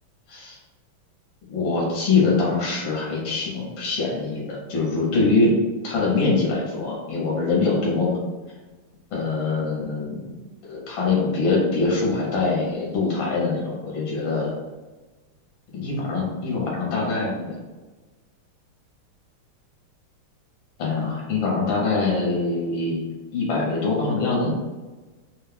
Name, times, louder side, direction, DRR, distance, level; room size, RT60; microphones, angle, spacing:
voice 1, 1.5-5.5 5.8-8.2 9.1-10.4 10.6-14.5 15.7-17.6 20.8-23.0 23.3-24.5, left 3 dB, 65° left, -3 dB, 1.7 m, -23 dB
4.0 x 2.3 x 3.3 m, 1.2 s
omnidirectional pair, 2.4 m